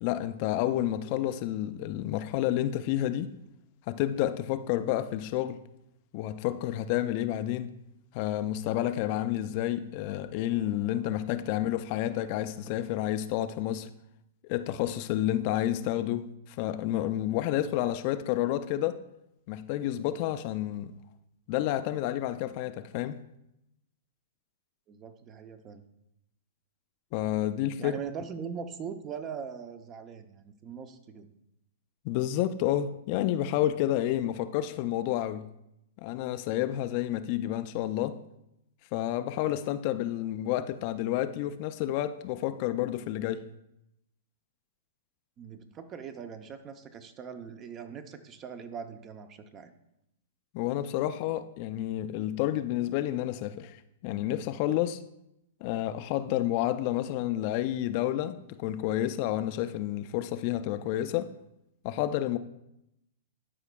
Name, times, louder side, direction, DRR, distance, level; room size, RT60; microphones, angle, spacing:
voice 1, 0.0-3.3 3.9-5.6 6.1-7.7 8.1-13.9 14.4-19.0 19.5-20.9 21.5-23.2 27.1-27.9 32.0-35.5 36.0-38.2 38.9-43.4 50.5-55.0 55.6-61.3 61.8-62.4, left 13 dB, 45° left, 0.4 m, -30 dB
voice 2, 24.9-25.8 27.8-31.3 45.4-49.7, right 6 dB, 30° right, 0.6 m, -41 dB
12.0 x 4.9 x 2.3 m
hypercardioid pair, 130°, 0 cm